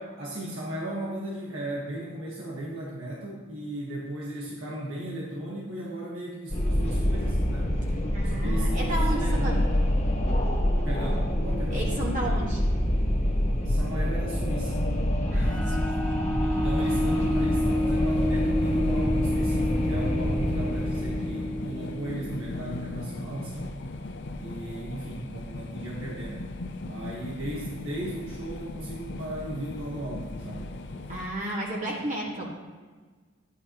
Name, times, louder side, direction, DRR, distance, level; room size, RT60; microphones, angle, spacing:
voice 1, 0.0-7.8 8.2-9.6 10.8-12.0 13.6-14.8 15.6-15.8 16.4-23.7 24.4-26.5 26.8-30.7, right 1 dB, 85° right, -4 dB, 1.6 m, -36 dB
Wind, 6.5-21.8, equal, 35° left, 1.4 m, -26 dB
voice 2, 8.1-9.6 11.7-12.6 15.3-15.8 31.1-32.5, right 1 dB, 40° right, -4 dB, 1.9 m, -32 dB
sound 1, 15.4-22.9, left 1 dB, 5° left, 0.4 m, -30 dB
sound 2, 16.9-31.3, left 2 dB, 60° left, 0.7 m, -38 dB
12.5 x 10.0 x 3.1 m, 1.4 s
head